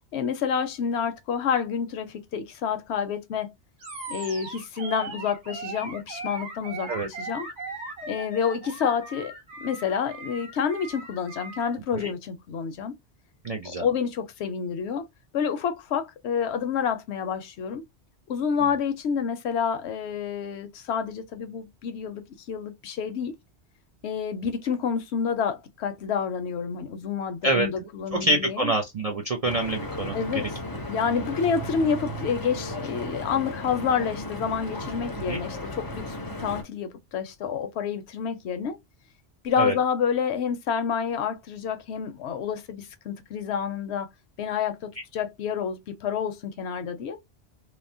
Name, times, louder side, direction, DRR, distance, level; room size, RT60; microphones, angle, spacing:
voice 1, 0.1-3.5 4.1-7.5 8.1-9.3 9.6-12.9 13.6-15.0 15.3-17.8 18.3-23.3 24.0-28.7 30.1-30.5 30.9-38.8 39.4-44.1 44.4-47.2, left 7 dB, 70° left, 0.8 m, -28 dB
Animal, 3.8-11.8, right 3 dB, 90° right, 1.4 m, -39 dB
voice 2, 13.4-13.8 27.4-27.7 28.2-30.2 35.3-35.4 39.6-39.7, right 1 dB, 55° right, 0.4 m, -26 dB
Stream / Boat Water vehicle, 29.4-36.6, left 1 dB, 30° left, 0.4 m, -35 dB
2.9 x 2.0 x 2.5 m
omnidirectional pair, 1.2 m